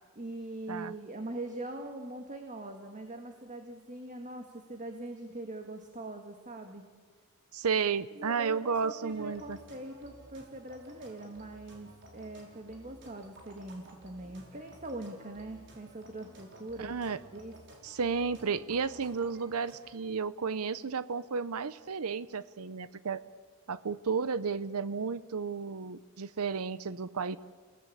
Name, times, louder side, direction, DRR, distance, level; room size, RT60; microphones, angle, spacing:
voice 1, 0.2-6.9 8.1-17.0 17.3-17.5, right 2 dB, 35° right, 4 dB, 1.9 m, -42 dB
voice 2, 7.5-9.6 16.8-17.2 17.8-23.2 23.7-27.4, right 5 dB, 85° right, 15 dB, 0.7 m, -33 dB
sound 1, 9.1-19.9, right 1 dB, 55° right, 4.5 m, -54 dB
29.5 x 18.5 x 8.5 m, 1.5 s
head